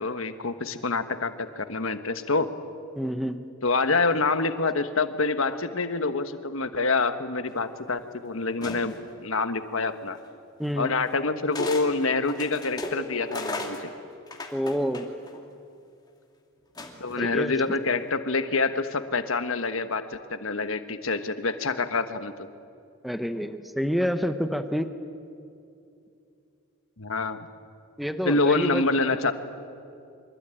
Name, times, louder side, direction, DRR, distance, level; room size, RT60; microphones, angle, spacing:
voice 1, 0.0-2.5 3.6-8.9 9.2-10.2 10.8-13.9 17.0-22.5 27.0-27.4 28.2-29.3, left 3 dB, 70° left, 9 dB, 1.3 m, -26 dB
voice 2, 2.9-3.4 10.6-10.9 14.5-15.1 17.2-17.6 23.0-24.9 28.0-28.8, equal, ahead, 8 dB, 0.9 m, -28 dB
sound 1, 8.6-9.1 10.2-10.3 11.5-11.9 12.2-15.4 16.8-17.2, left 2 dB, 20° left, 2.3 m, -35 dB
24.5 x 22.5 x 9.0 m, 2.6 s
head